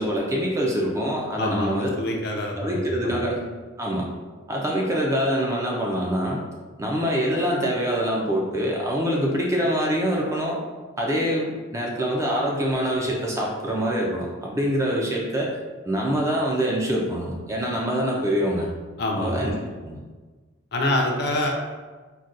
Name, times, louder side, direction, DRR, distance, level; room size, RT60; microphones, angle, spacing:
voice 1, 0.0-1.9 2.6-3.4 3.8-4.1 4.5-6.4 6.8-10.6 11.0-15.5 15.8-18.7 19.2-20.0, equal, 15° right, -2 dB, 0.3 m, -25 dB
voice 2, 1.4-3.2 19.0-19.5 20.7-21.5, left 1 dB, 50° left, 0 dB, 0.5 m, -26 dB
4.0 x 2.2 x 2.4 m, 1.3 s
head